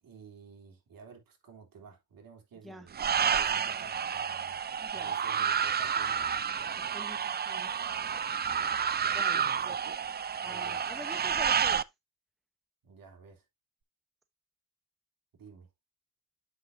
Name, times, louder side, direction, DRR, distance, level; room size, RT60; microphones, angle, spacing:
voice 1, 0.0-4.6 4.9-6.7 8.9-10.0 10.4-10.8 12.8-13.4 15.4-15.7, right 6 dB, 75° right, 3.1 m, -51 dB
sound 1, 2.9-11.8, right 7 dB, 30° right, 0.4 m, -30 dB
voice 2, 4.8-5.1 6.8-7.7 9.1-9.8 10.4-11.8, equal, ahead, 0.7 m, -46 dB
8.3 x 6.7 x 2.6 m
cardioid pair, 100°, 35 cm